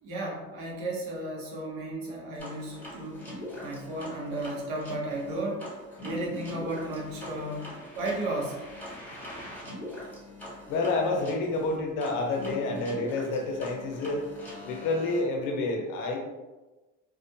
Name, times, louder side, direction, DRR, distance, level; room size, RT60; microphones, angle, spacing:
voice 1, 0.0-3.2 3.6-5.7 6.0-7.7 7.9-8.6, right 1 dB, 80° right, -2 dB, 0.9 m, -34 dB
sound 1, 2.4-15.2, left 1 dB, 5° left, 0.9 m, -42 dB
voice 2, 10.7-14.2 14.6-16.2, left 2 dB, 70° left, 2 dB, 0.6 m, -29 dB
2.4 x 2.0 x 2.7 m, 1.1 s
supercardioid pair, 90°, 33 cm